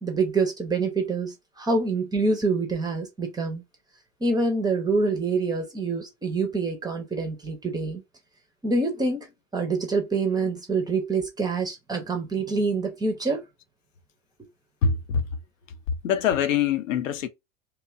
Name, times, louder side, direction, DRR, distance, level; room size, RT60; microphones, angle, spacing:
voice 1, 0.0-3.6 4.2-8.0 8.6-9.3 9.5-13.4, right 3 dB, 10° right, 0.5 m, -26 dB
voice 2, 14.8-15.2 16.0-17.3, left 7 dB, 70° left, 0.5 m, -23 dB
2.7 x 2.2 x 2.4 m
figure-of-eight pair, 80°, 40 cm